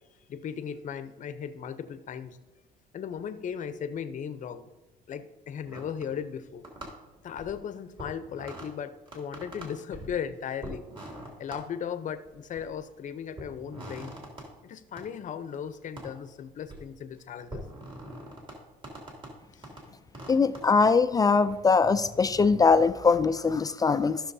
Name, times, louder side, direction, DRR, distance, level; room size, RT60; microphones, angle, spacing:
voice 1, 0.3-2.4 2.9-4.7 5.1-6.7 7.2-10.9 11.4-14.2 14.6-17.6 19.5-19.7, left 8 dB, 50° left, 11 dB, 0.7 m, -37 dB
sound 1, 5.6-6.4 6.6-7.6 8.0-8.7 9.1-10.2 10.6-11.6 12.2-12.8 13.4-14.5 15.0-15.1 16.0-16.1 16.5-16.9 17.5-18.6 18.8-19.3 19.6-19.8 20.1-20.9 21.5-21.6, right 1 dB, 30° right, 2.7 m, -43 dB
voice 2, 20.3-24.2, left 4 dB, 20° left, 12 dB, 0.3 m, -22 dB
15.0 x 6.3 x 2.7 m, 1.1 s
cardioid pair, 110°, 17 cm